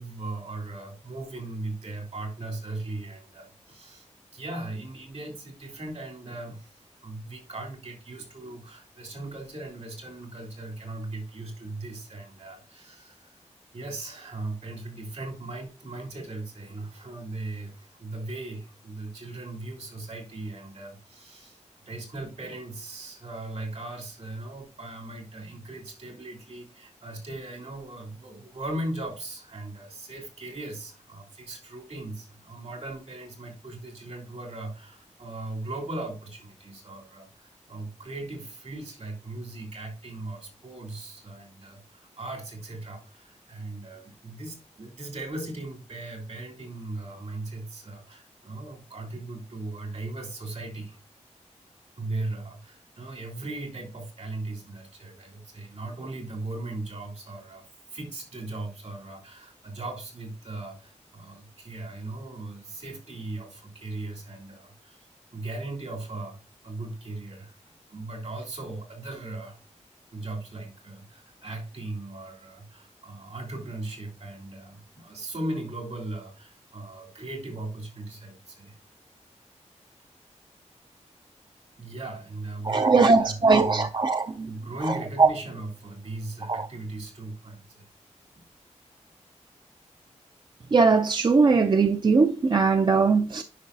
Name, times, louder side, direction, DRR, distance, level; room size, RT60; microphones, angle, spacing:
voice 1, 0.0-4.1 4.3-13.4 13.7-51.0 52.0-66.4 66.6-67.6 67.9-69.6 70.1-78.8 81.8-83.9 84.5-87.9, right 2 dB, 65° right, 3.2 m, -38 dB
voice 2, 82.6-84.5 85.2-85.3 86.5-86.7 90.7-93.4, right 4 dB, 40° right, 0.4 m, -20 dB
10.0 x 5.4 x 2.7 m
wide cardioid pair, 115°, 12 cm